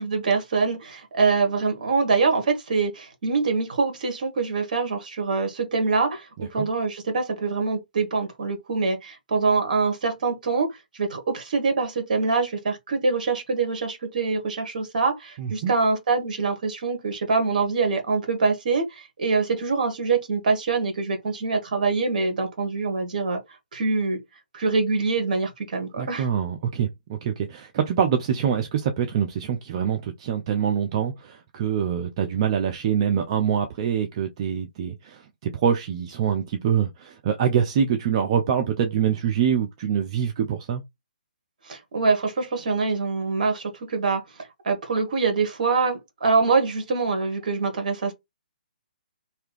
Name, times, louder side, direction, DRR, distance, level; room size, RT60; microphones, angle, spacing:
voice 1, 0.0-10.7 11.0-23.4 23.7-24.2 24.5-26.3 41.7-44.2 44.6-48.1, right 4 dB, 60° right, 1.2 m, -24 dB
voice 2, 15.4-15.7 26.0-40.8, right 8 dB, 40° right, 0.5 m, -25 dB
2.8 x 2.3 x 3.2 m
hypercardioid pair, 140°, 5 cm